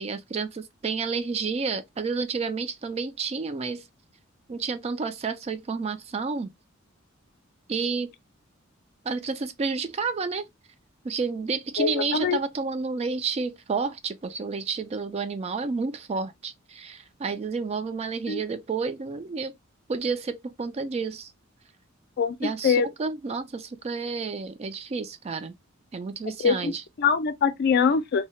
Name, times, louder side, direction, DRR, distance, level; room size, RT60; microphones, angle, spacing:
voice 1, 0.0-3.8 4.5-6.5 7.7-8.1 9.0-10.5 11.0-19.5 19.9-21.3 22.4-25.5 25.9-26.8, right 4 dB, 30° right, 0.3 m, -30 dB
voice 2, 11.8-12.4 18.3-18.4 22.2-22.9 26.4-26.7 27.0-28.3, left 6 dB, 50° left, 0.3 m, -23 dB
2.7 x 2.1 x 3.0 m
head